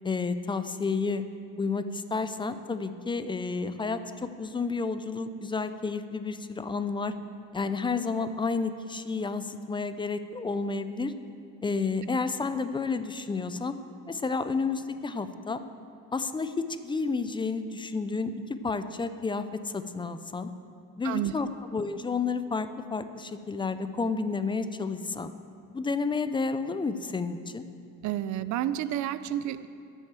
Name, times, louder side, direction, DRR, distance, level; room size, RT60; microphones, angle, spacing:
voice 1, 0.0-1.2 1.6-7.1 7.5-11.1 11.6-13.7 14.1-15.6 16.1-18.3 18.6-20.5 21.0-25.3 25.7-27.6, left 4 dB, 15° left, 11 dB, 0.4 m, -31 dB
voice 2, 21.0-21.5 28.0-29.7, right 11 dB, 70° right, 14 dB, 0.5 m, -30 dB
11.0 x 6.4 x 7.4 m, 2.6 s
cardioid pair, 115°, 30 cm